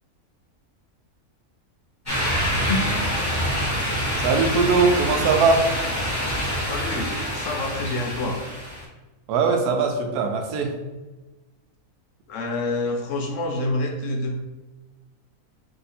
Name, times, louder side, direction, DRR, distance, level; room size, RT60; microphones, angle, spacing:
sound 1, 2.1-8.8, equal, 15° left, 0.9 m, -26 dB
voice 1, 4.2-5.7 9.3-10.7, right 4 dB, 85° right, 4 dB, 1.1 m, -20 dB
voice 2, 6.7-8.4 12.3-14.4, left 2 dB, 65° left, 2 dB, 0.8 m, -27 dB
2.8 x 2.8 x 4.1 m, 1.2 s
omnidirectional pair, 1.6 m